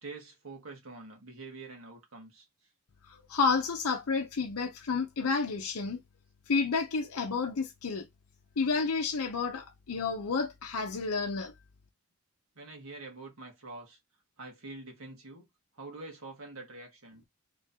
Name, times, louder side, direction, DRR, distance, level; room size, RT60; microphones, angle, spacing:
voice 1, 0.0-2.5 12.5-14.0 14.4-15.5 15.7-17.2, right 3 dB, 70° right, 1.7 m, -46 dB
voice 2, 3.1-6.0 6.5-8.0 8.6-11.5, left 4 dB, 80° left, 0.6 m, -30 dB
3.7 x 3.7 x 2.8 m
head